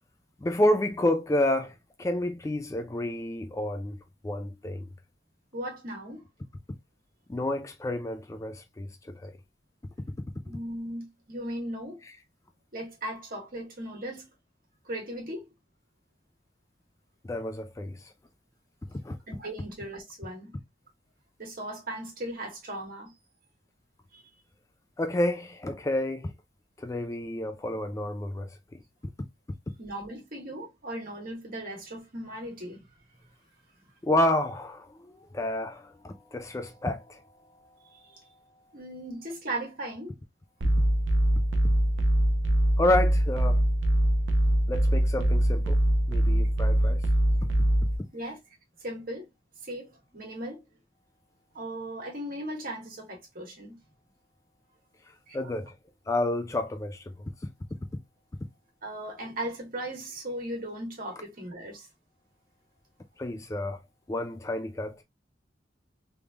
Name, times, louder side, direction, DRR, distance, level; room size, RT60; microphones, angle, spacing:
voice 1, 0.4-4.0 4.2-4.9 7.3-9.3 17.2-18.0 19.0-19.2 25.0-26.3 26.8-28.8 34.0-37.2 42.8-43.6 44.7-45.8 46.1-47.0 55.3-55.7 56.1-57.1 63.2-63.8 64.1-65.0, left 1 dB, 15° left, 0.3 m, -29 dB
voice 2, 5.5-6.2 10.5-12.0 12.7-14.3 14.8-15.5 19.3-20.5 21.4-23.1 24.1-24.2 29.8-32.9 37.9-38.2 38.7-40.1 48.1-48.4 48.8-49.3 49.6-50.6 51.5-53.8 55.3-55.4 58.8-61.9, right 1 dB, 50° right, 1.7 m, -37 dB
sound 1, 40.6-48.0, right 1 dB, 85° right, 0.8 m, -23 dB
3.5 x 3.2 x 2.4 m
head